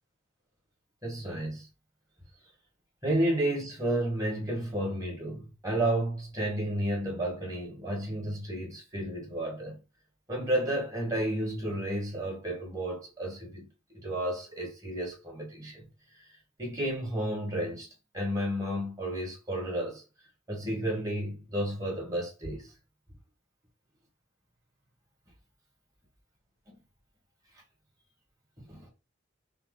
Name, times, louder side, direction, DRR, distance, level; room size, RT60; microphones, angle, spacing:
voice 1, 1.0-1.7 3.0-9.8 10.3-13.7 13.9-15.8 16.6-17.9 18.1-20.0 20.5-22.7 26.7-26.8 28.7-28.9, right 1 dB, 15° right, 1.9 m, -32 dB
5.7 x 2.1 x 4.0 m
head